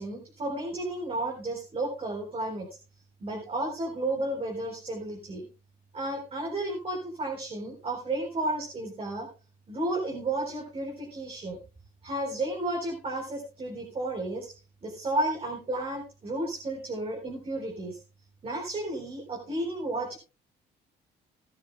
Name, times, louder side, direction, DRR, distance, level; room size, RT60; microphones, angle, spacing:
voice 1, 0.0-2.7 3.2-5.5 5.9-9.3 9.7-11.6 12.0-14.5 14.8-18.0 18.4-20.2, right 2 dB, 35° right, 0 dB, 4.0 m, -32 dB
18.5 x 12.0 x 2.3 m, 0.31 s
cardioid pair, 110°, 17 cm